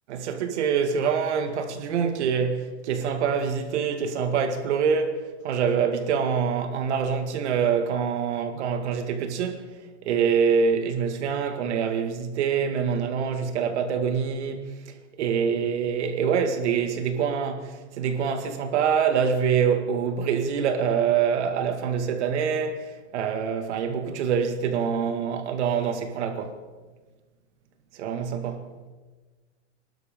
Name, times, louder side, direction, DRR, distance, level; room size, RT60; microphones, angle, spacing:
voice 1, 0.1-9.7 10.1-14.7 15.2-26.6 27.9-28.7, right 6 dB, 70° right, 2.1 m, -25 dB
23.0 x 12.0 x 3.8 m
supercardioid pair, 140°, 36 cm